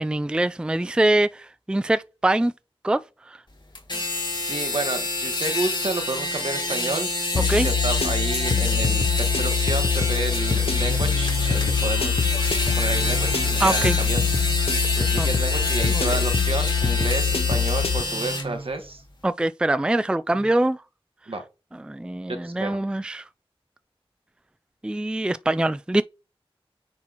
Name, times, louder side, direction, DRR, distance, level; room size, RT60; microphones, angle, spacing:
voice 1, 0.0-2.5 2.8-3.0 3.3-3.4 7.5-7.7 13.6-14.0 15.2-15.3 15.9-16.2 19.2-20.8 21.9-23.2 24.8-26.0, right 1 dB, 10° right, 0.3 m, -23 dB
sound 1, 3.7-18.4, left 2 dB, 50° left, 2.1 m, -27 dB
voice 2, 4.5-12.2 12.8-14.2 15.0-19.0 21.3-21.4 22.3-22.8, right 2 dB, 65° right, 1.4 m, -30 dB
sound 2, 7.3-18.0, left 6 dB, 85° left, 0.7 m, -24 dB
sound 3, 10.7-17.2 18.0-19.0 20.3-20.5, right 2 dB, 50° right, 1.2 m, -38 dB
9.5 x 4.4 x 2.9 m
wide cardioid pair, 65°, 10 cm